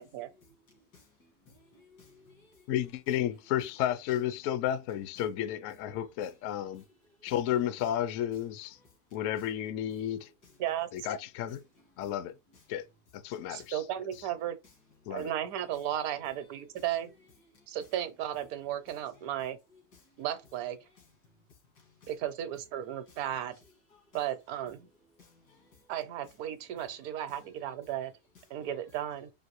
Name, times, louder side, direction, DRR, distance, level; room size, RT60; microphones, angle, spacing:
voice 1, 0.4-2.7 5.9-6.3 6.7-6.9 7.2-7.3 8.7-9.4 10.0-10.6 11.5-12.1 12.5-12.6 13.3-13.7 15.0-15.3 16.8-16.9 17.5-17.7 18.9-19.0 19.9-20.3 20.9-21.0 21.8-22.1 23.1-23.2 23.9-24.1 25.2-25.9 26.8-27.4, left 4 dB, 85° left, 2.3 m, -61 dB
voice 2, 2.7-6.8 7.2-8.8 9.1-10.3 10.9-11.6 12.0-12.3 12.7-12.8 13.1-13.8 15.1-15.3, left 11 dB, 70° left, 0.7 m, -32 dB
voice 3, 13.5-14.6 15.1-17.1 17.7-19.6 20.2-20.8 22.1-23.6 24.1-24.9 25.9-28.1 28.5-29.3, right 11 dB, 70° right, 1.1 m, -35 dB
5.2 x 2.6 x 3.0 m
omnidirectional pair, 1.8 m